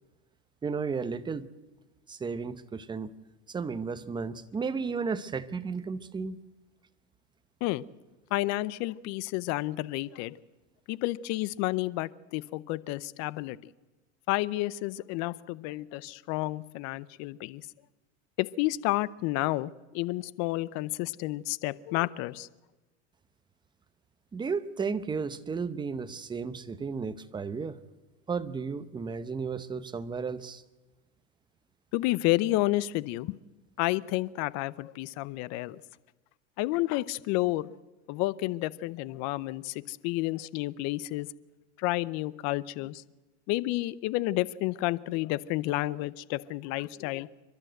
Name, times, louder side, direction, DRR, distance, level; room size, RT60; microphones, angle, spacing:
voice 1, 0.6-1.5 2.1-3.1 3.5-6.4 24.3-27.8 28.3-30.6, right 5 dB, 10° right, 13 dB, 0.8 m, -33 dB
voice 2, 8.3-10.4 10.9-13.7 14.3-17.7 18.4-22.5 31.9-33.4 33.8-35.8 36.6-37.7 38.1-41.3 41.8-43.0 43.5-47.3, left 18 dB, 50° left, 20 dB, 0.7 m, -30 dB
29.0 x 12.0 x 7.9 m, 1.1 s
supercardioid pair, 130°, 36 cm